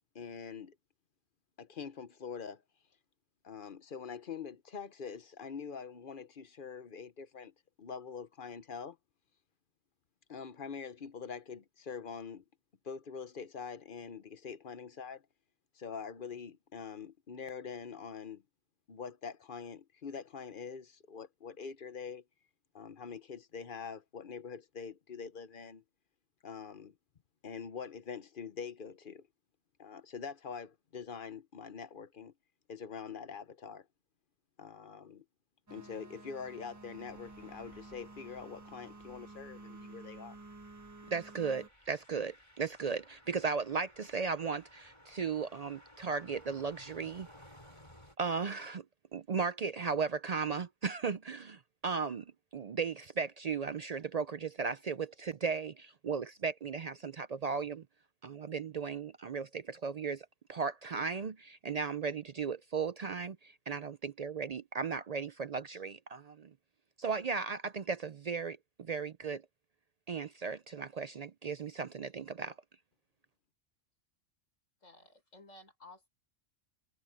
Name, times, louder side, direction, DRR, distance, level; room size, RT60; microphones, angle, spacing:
voice 1, 0.1-0.8 1.6-2.6 3.4-9.0 10.3-12.4 12.8-15.2 15.7-18.4 18.9-22.2 22.7-25.8 26.4-26.9 27.4-29.3 29.8-32.3 32.7-33.9 34.6-35.2 35.7-40.4, left 6 dB, 45° left, 1.0 m, -44 dB
sound 1, 35.7-41.7, right 2 dB, 15° right, 1.4 m, -52 dB
sound 2, 36.7-48.2, equal, 25° left, 7.1 m, -60 dB
voice 2, 41.1-47.3 48.2-48.8 49.1-52.2 52.5-57.8 58.2-66.5 67.0-69.4 70.1-72.5, right 5 dB, 60° right, 0.4 m, -36 dB
voice 3, 74.8-76.1, left 2 dB, 85° left, 6.4 m, -55 dB
omnidirectional pair, 1.3 m